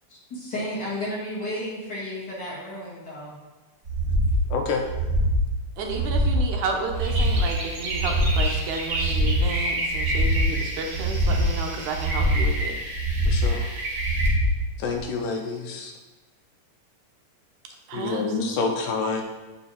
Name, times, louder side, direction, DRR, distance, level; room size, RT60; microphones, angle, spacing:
voice 1, 0.1-3.4, left 1 dB, 35° left, -6 dB, 2.2 m, -33 dB
sound 1, 3.9-4.4 4.8-5.4 5.8-6.4 6.8-7.4 7.9-8.4 8.9-9.5 9.9-10.5 10.9-11.5 11.9-12.5 12.9-13.5 13.9-14.5 14.9-15.0, equal, 40° right, 1.3 m, -23 dB
voice 2, 4.5-4.9 13.3-13.7 14.8-15.9 17.9-19.2, left 4 dB, 80° left, 2 dB, 2.3 m, -27 dB
voice 3, 5.8-12.8 17.9-18.6, right 4 dB, 75° right, 2 dB, 2.1 m, -32 dB
sound 2, 6.9-14.3, right 1 dB, 60° right, 2.8 m, -31 dB
7.6 x 5.1 x 4.3 m, 1.2 s
omnidirectional pair, 3.7 m